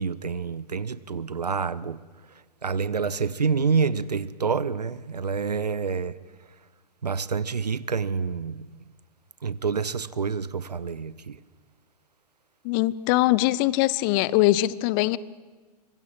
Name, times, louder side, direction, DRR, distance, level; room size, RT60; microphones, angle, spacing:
voice 1, 0.0-2.0 2.6-6.2 7.0-8.8 9.4-11.4, right 5 dB, 75° right, 0.9 m, -27 dB
voice 2, 12.6-15.2, left 17 dB, 30° left, 0.7 m, -22 dB
25.5 x 23.5 x 7.6 m
figure-of-eight pair, 110°, 21 cm